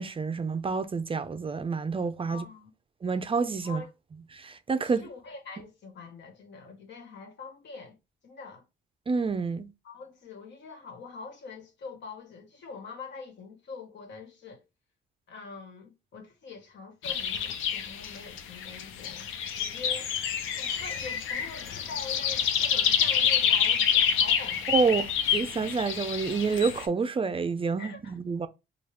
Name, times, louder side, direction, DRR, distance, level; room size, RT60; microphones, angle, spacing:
voice 1, 0.0-2.4 3.0-3.8 4.3-5.1 9.1-9.7 24.7-25.0 25.3-28.5, right 5 dB, 25° right, 0.4 m, -28 dB
voice 2, 2.3-2.7 3.6-3.9 4.8-8.0 8.2-8.7 9.8-14.6 15.3-20.1 20.6-25.1 27.8-28.2, left 4 dB, 65° left, 1.4 m, -44 dB
sound 1, 17.0-26.9, left 8 dB, 85° left, 0.6 m, -28 dB
4.5 x 2.3 x 3.2 m
cardioid pair, 90°, 20 cm